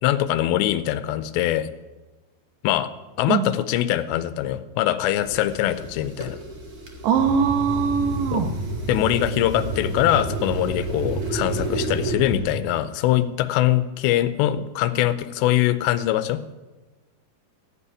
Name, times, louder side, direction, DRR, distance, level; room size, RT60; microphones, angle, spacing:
voice 1, 0.0-1.7 2.6-2.9 3.2-6.4 8.3-8.5 8.9-16.4, left 13 dB, 90° left, 13 dB, 2.8 m, -23 dB
sound 1, 5.2-12.1, right 3 dB, 65° right, 0.9 m, -34 dB
voice 2, 7.0-8.5, right 6 dB, 80° right, 7 dB, 3.1 m, -21 dB
sound 2, 7.1-12.5, right 2 dB, 50° right, 5.3 m, -30 dB
15.0 x 5.5 x 9.7 m, 1.2 s
omnidirectional pair, 5.0 m